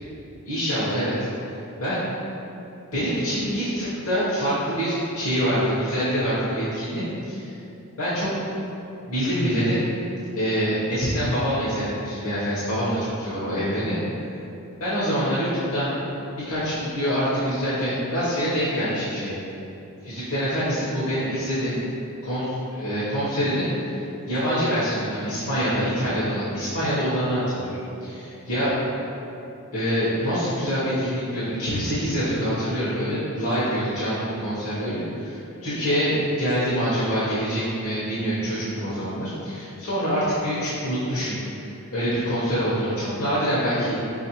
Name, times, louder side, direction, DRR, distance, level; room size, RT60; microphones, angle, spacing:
voice 1, 0.4-1.1 1.8-2.1 2.9-7.6 8.0-8.3 9.1-9.8 10.3-14.0 14.8-15.9 16.3-19.4 20.0-21.8 22.2-28.7 29.7-41.4 41.9-44.0, equal, 75° left, -11 dB, 0.8 m, -25 dB
4.5 x 2.4 x 2.8 m, 2.8 s
head